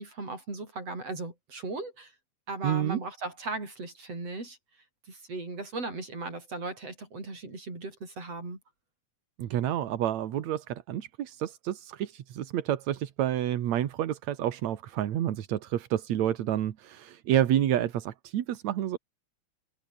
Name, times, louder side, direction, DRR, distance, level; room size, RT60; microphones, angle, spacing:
voice 1, 0.0-2.1 2.5-4.6 5.1-8.6, right 3 dB, 50° right, 8.7 m, -37 dB
voice 2, 2.6-3.0 9.4-19.0, right 11 dB, 70° right, 2.6 m, -29 dB
omnidirectional pair, 3.5 m